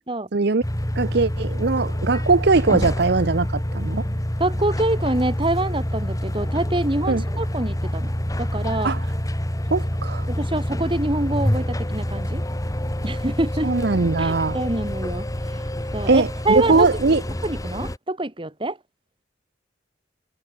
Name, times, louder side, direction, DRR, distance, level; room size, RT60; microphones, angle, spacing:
voice 1, 0.3-0.6 0.9-4.1 7.1-7.2 8.8-9.0 9.7-10.3 13.6-14.6 16.1-17.2, right 3 dB, 60° right, 0.8 m, -20 dB
sound 1, 0.6-18.0, equal, 20° left, 1.7 m, -27 dB
voice 2, 4.4-8.1 8.4-8.9 10.3-12.4 13.0-13.7 14.2-16.9 17.4-18.8, right 1 dB, 30° right, 2.5 m, -26 dB
head